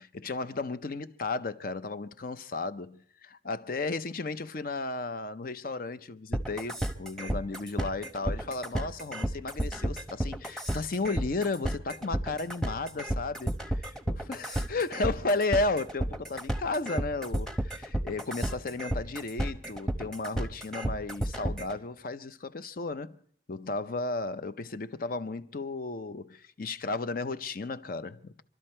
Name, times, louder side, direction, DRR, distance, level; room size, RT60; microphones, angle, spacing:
voice 1, 0.0-13.4 14.2-23.2 23.5-28.4, left 3 dB, 50° left, 0.6 m, -34 dB
sound 1, 6.3-21.8, right 1 dB, 5° left, 0.9 m, -31 dB
27.5 x 12.0 x 4.4 m
head